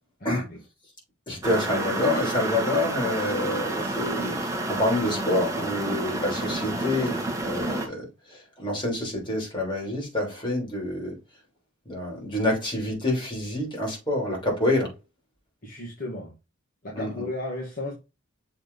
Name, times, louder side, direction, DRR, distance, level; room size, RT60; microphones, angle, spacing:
voice 1, 0.2-0.6 15.6-16.3 16.8-17.9, left 2 dB, 45° left, 1.7 m, -34 dB
voice 2, 1.3-7.2 7.4-11.2 11.8-14.9 16.9-17.2, left 1 dB, 25° left, 3.3 m, -27 dB
sound 1, 1.4-7.9, right 2 dB, 15° right, 1.1 m, -30 dB
7.0 x 3.5 x 4.0 m
head